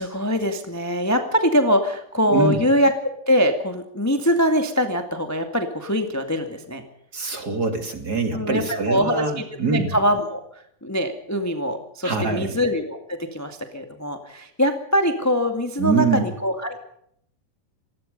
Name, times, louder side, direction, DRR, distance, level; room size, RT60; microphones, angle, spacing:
voice 1, 0.0-6.8 8.3-16.8, equal, 5° left, 6 dB, 1.4 m, -23 dB
voice 2, 2.3-2.6 7.1-9.9 12.0-12.6 15.8-16.3, right 4 dB, 30° right, 6 dB, 3.1 m, -24 dB
26.5 x 20.5 x 5.4 m, 0.70 s
omnidirectional pair, 3.9 m